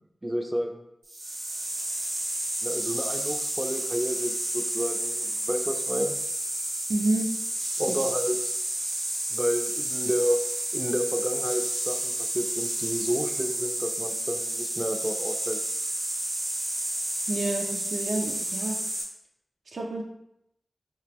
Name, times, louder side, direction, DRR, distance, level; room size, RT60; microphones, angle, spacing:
voice 1, 0.2-0.8 2.6-6.1 7.8-8.5 9.3-10.4 10.7-15.6, equal, 20° right, 4 dB, 0.3 m, -30 dB
sound 1, 1.1-19.0, right 1 dB, 65° right, 0.9 m, -31 dB
voice 2, 6.9-7.3 7.9-8.0 17.3-18.8 19.7-20.0, right 2 dB, 80° right, 0 dB, 0.5 m, -29 dB
3.5 x 2.8 x 3.0 m, 0.79 s
wide cardioid pair, 60°, 0 cm